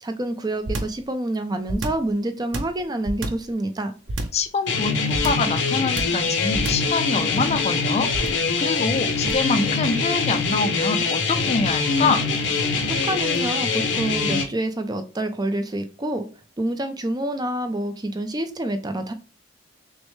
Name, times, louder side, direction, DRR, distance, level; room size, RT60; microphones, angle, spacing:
voice 1, 0.0-3.9 12.8-16.3 16.6-19.1, right 1 dB, 20° right, 8 dB, 0.5 m, -27 dB
sound 1, 0.6-1.0 1.7-2.1 2.5-3.5 4.1-4.5 5.1-5.5 6.0-6.3 6.5-6.9 8.1-8.5 9.3-9.5, right 1 dB, 85° right, 0.7 m, -29 dB
voice 2, 4.3-8.1 8.6-12.2, left 4 dB, 35° left, 10 dB, 0.4 m, -25 dB
sound 2, 4.7-14.4, left 4 dB, 75° left, 0.8 m, -23 dB
6.2 x 2.1 x 3.1 m, 0.36 s
head